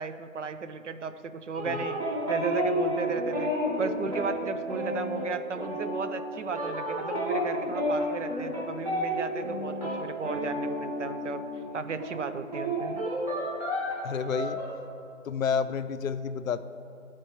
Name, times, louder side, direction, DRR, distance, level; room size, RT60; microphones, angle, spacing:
voice 1, 0.0-3.5 3.8-11.4 11.7-13.0, right 5 dB, 60° right, 10 dB, 0.5 m, -35 dB
sound 1, 1.5-11.7 12.0-14.7, equal, 25° right, 1.1 m, -31 dB
voice 2, 14.0-14.6 15.2-16.6, left 6 dB, 75° left, 12 dB, 0.5 m, -30 dB
13.0 x 4.4 x 3.0 m, 2.4 s
figure-of-eight pair, 160°, 41 cm